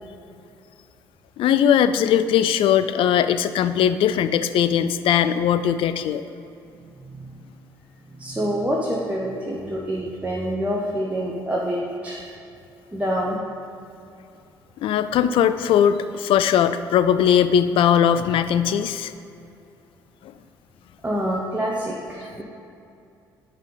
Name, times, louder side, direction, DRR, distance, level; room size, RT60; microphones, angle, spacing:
voice 1, 1.4-6.2 14.8-19.1 20.2-20.3, left 9 dB, 55° left, 11 dB, 0.4 m, -19 dB
voice 2, 6.8-7.3 8.1-12.2 12.9-13.4 21.0-22.4, equal, 10° right, -4 dB, 1.0 m, -27 dB
9.1 x 5.6 x 3.9 m, 2.6 s
figure-of-eight pair, 45°, 11 cm